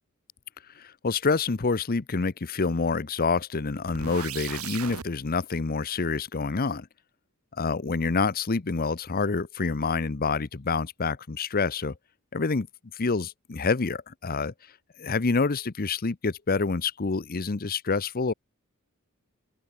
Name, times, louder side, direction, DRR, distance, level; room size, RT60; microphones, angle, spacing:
voice 1, 0.8-6.9 7.6-11.9 12.3-12.7 12.9-14.5 15.0-18.3, left 4 dB, 45° left, 0.8 m, -27 dB
sound 1, 3.9-5.1, right 8 dB, 80° right, 2.0 m, -37 dB
open air
head